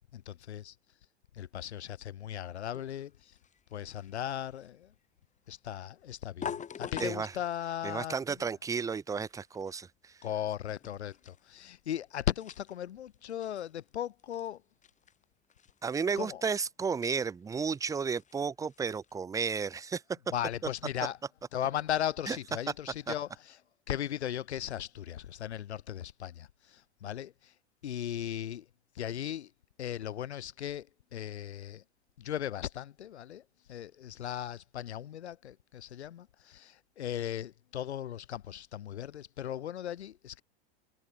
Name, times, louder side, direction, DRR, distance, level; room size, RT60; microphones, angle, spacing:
voice 1, 0.1-0.7 1.3-3.3 3.7-4.9 5.5-8.1 10.2-14.6 16.2-16.4 20.3-21.2 21.5-23.6 23.9-27.5 27.8-28.7 28.9-29.5 29.8-30.9 31.1-31.8 32.2-33.4 33.7-40.4, left 11 dB, 80° left, 1.2 m, -37 dB
sound 1, 2.7-19.2, left 7 dB, 20° left, 2.0 m, -49 dB
voice 2, 7.0-7.3 7.8-9.9 15.8-20.0 22.3-22.4 23.1-23.2, right 5 dB, 10° right, 0.5 m, -33 dB
hypercardioid pair, 95°, 33 cm